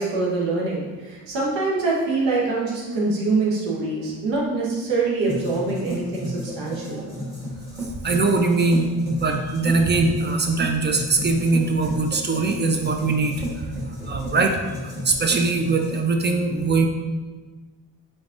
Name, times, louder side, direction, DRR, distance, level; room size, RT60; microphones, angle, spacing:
voice 1, 0.0-7.0, right 3 dB, 75° right, -4 dB, 1.0 m, -24 dB
sound 1, 5.2-16.0, equal, 5° right, 1.3 m, -33 dB
voice 2, 8.0-16.9, right 3 dB, 25° right, 4 dB, 0.4 m, -22 dB
4.0 x 3.4 x 2.5 m, 1.3 s
supercardioid pair, 70°, 44 cm